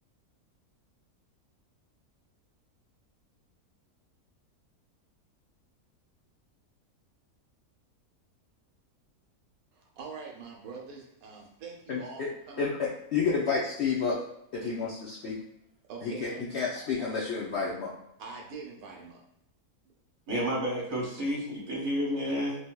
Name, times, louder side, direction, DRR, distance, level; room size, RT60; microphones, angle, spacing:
voice 1, 9.7-12.2 12.5-12.7 14.6-14.7 15.9-16.4 17.0-17.1 18.2-19.2, right 5 dB, 75° right, 0 dB, 1.1 m, -43 dB
voice 2, 11.9-12.3 12.6-14.2 14.5-15.4 16.0-17.9, left 5 dB, 65° left, -6 dB, 0.7 m, -30 dB
voice 3, 20.3-22.6, equal, 35° right, -4 dB, 1.1 m, -30 dB
3.3 x 2.7 x 2.2 m, 0.77 s
omnidirectional pair, 1.6 m